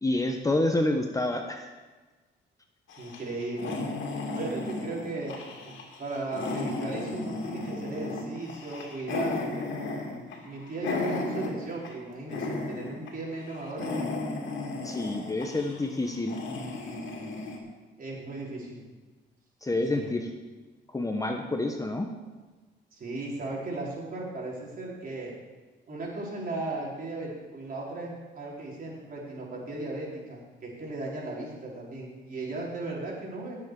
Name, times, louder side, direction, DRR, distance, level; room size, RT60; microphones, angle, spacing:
voice 1, 0.0-1.6 14.8-16.4 19.6-20.3 20.9-22.1, left 2 dB, 15° left, 4 dB, 1.1 m, -28 dB
sound 1, 2.9-12.0 12.3-13.1 13.4-17.6, left 3 dB, 70° left, 2.5 m, -35 dB
voice 2, 3.0-3.8 4.3-13.9 18.0-18.8 19.9-20.2 22.9-25.3 25.9-33.6, right 2 dB, 45° right, -4 dB, 4.4 m, -36 dB
17.5 x 7.6 x 4.9 m, 1.3 s
cardioid pair, 90°, 20 cm